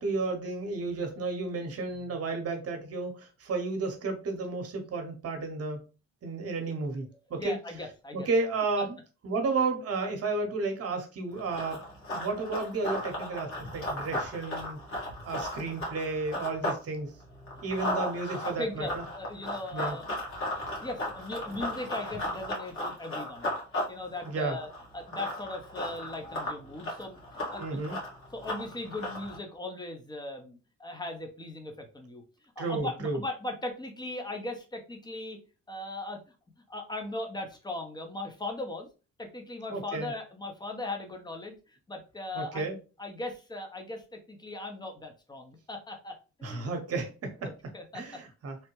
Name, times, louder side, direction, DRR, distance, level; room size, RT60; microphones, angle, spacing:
voice 1, 0.0-5.8 6.2-7.5 8.1-9.0 9.2-11.8 12.1-14.8 15.2-17.1 17.6-19.0 19.7-20.0 24.3-24.6 27.6-28.0 32.6-33.2 39.7-40.1 42.3-42.8 46.4-47.5 47.9-48.6, right 3 dB, 50° right, 4 dB, 1.0 m, -32 dB
voice 2, 7.3-8.3 17.5-17.9 18.4-20.1 20.8-23.5 23.9-24.7 24.9-27.2 27.5-28.0 28.3-32.2 32.6-35.4 35.7-36.2 36.7-38.9 39.2-42.7 43.0-46.7 47.4-48.2, left 2 dB, 15° left, 3 dB, 0.8 m, -39 dB
Run, 11.3-16.8 17.2-29.4, left 1 dB, 45° left, 1.6 m, -35 dB
3.2 x 2.2 x 3.0 m, 0.33 s
cardioid pair, 90°, 30 cm